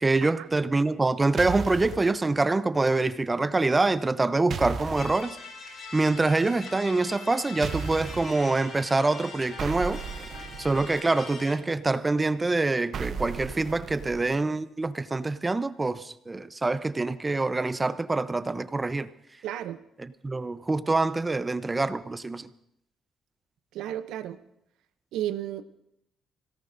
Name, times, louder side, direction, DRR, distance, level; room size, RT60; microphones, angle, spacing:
voice 1, 0.0-5.4 5.9-10.0 10.6-19.1 20.2-22.5, right 3 dB, 20° right, 0.7 m, -25 dB
sound 1, 1.4-2.1 4.5-5.2 7.6-8.3 9.6-11.0 12.9-14.4, right 6 dB, 55° right, 0.8 m, -35 dB
sound 2, 5.0-11.5, left 4 dB, 65° left, 6.3 m, -42 dB
voice 2, 19.4-19.8 23.7-24.4 25.1-25.6, right 12 dB, 90° right, 0.6 m, -33 dB
25.5 x 17.5 x 2.6 m
cardioid pair, 90°, 0 cm